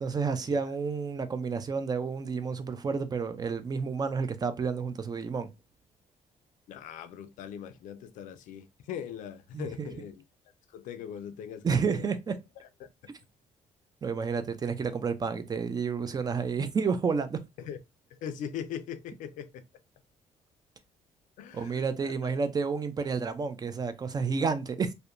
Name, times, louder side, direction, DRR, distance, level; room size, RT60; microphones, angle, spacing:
voice 1, 0.0-5.5 9.5-9.9 11.6-12.4 14.0-17.4 21.5-24.9, right 5 dB, 30° right, 0.4 m, -30 dB
voice 2, 6.7-10.2 10.7-12.1 12.8-12.9 17.6-17.8 18.1-19.6 21.4-22.4, left 8 dB, 80° left, 0.4 m, -41 dB
2.7 x 2.1 x 2.4 m
cardioid pair, 90°, 13 cm